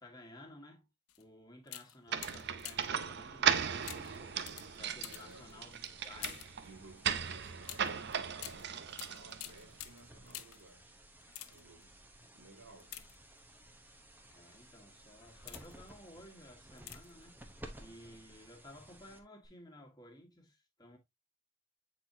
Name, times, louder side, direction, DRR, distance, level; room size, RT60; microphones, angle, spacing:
voice 1, 0.0-0.9 1.2-4.4 4.8-6.5 12.2-12.3 14.3-17.4 17.8-21.0, left 1 dB, 20° left, 1.7 m, -55 dB
sound 1, 1.1-1.2 1.6-3.0 3.8-6.6 7.6-10.7 11.2-11.8 12.8-13.6 14.3-14.5 15.1-15.9 16.8-17.2 17.5-17.6, left 13 dB, 85° left, 0.7 m, -49 dB
sound 2, 2.1-9.7, right 8 dB, 50° right, 0.6 m, -37 dB
sound 3, 3.5-19.5, right 1 dB, 10° right, 0.8 m, -57 dB
voice 2, 5.1-5.6 6.6-10.8 11.5-12.0 12.3-13.1 17.8-18.3, right 2 dB, 70° right, 2.5 m, -57 dB
8.2 x 4.4 x 2.7 m
head